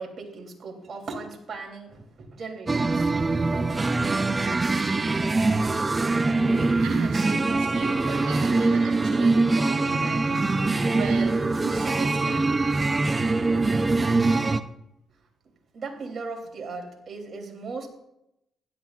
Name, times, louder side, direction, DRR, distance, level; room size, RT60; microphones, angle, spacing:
voice 1, 0.0-3.1 3.5-3.7 15.7-17.9, right 4 dB, 50° right, 2 dB, 3.1 m, -37 dB
sound 1, 2.7-14.6, right 3 dB, 30° right, 0.6 m, -23 dB
voice 2, 6.3-12.6, right 8 dB, 90° right, 2 dB, 0.9 m, -38 dB
16.0 x 11.5 x 2.5 m, 0.83 s
supercardioid pair, 65°, 0 cm